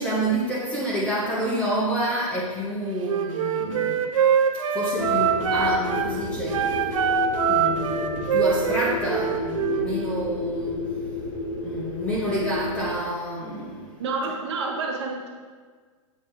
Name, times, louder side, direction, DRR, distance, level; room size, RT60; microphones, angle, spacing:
voice 1, 0.0-4.1 4.7-6.7 7.5-10.8 11.6-13.9, right 1 dB, 5° left, -6 dB, 0.6 m, -28 dB
Wind instrument woodwind instrument, 3.0-6.1 6.5-9.9, right 7 dB, 75° right, 0.6 m, -24 dB
sound 1, 4.9-12.9, left 2 dB, 40° left, 1.4 m, -31 dB
voice 2, 14.0-15.3, right 3 dB, 55° right, 0 dB, 1.2 m, -29 dB
7.2 x 3.3 x 5.2 m, 1.5 s
supercardioid pair, 180°, 17 cm